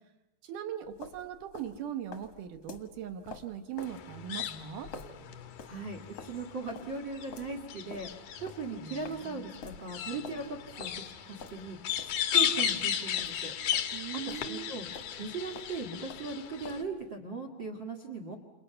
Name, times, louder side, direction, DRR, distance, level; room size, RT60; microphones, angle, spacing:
voice 1, 0.4-4.9 13.9-14.7, right 10 dB, 70° right, 8 dB, 2.0 m, -40 dB
sound 1, 0.8-14.7 14.9-17.1, left 4 dB, 55° left, 1.8 m, -49 dB
sound 2, 3.8-16.8, left 9 dB, 70° left, 1.8 m, -35 dB
sound 3, 4.1-7.2 8.3-11.3, left 2 dB, 5° left, 0.6 m, -53 dB
voice 2, 5.7-11.8 12.0-13.5 14.4-14.9 15.1-18.4, right 3 dB, 50° right, 5 dB, 1.4 m, -39 dB
30.0 x 29.0 x 5.7 m, 0.98 s
omnidirectional pair, 5.3 m